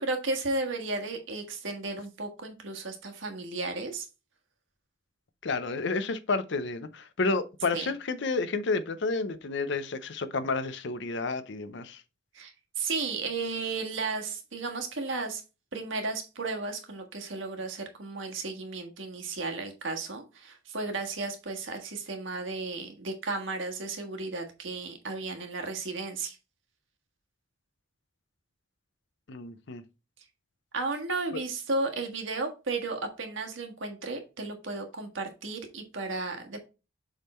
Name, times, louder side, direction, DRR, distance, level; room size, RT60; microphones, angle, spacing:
voice 1, 0.0-4.1 7.7-7.9 12.3-15.4 15.7-26.4 30.7-36.7, right 3 dB, 70° right, 1.5 m, -34 dB
voice 2, 5.4-12.0 29.3-29.8 31.3-31.4, left 3 dB, 60° left, 0.6 m, -30 dB
7.1 x 3.7 x 4.3 m
head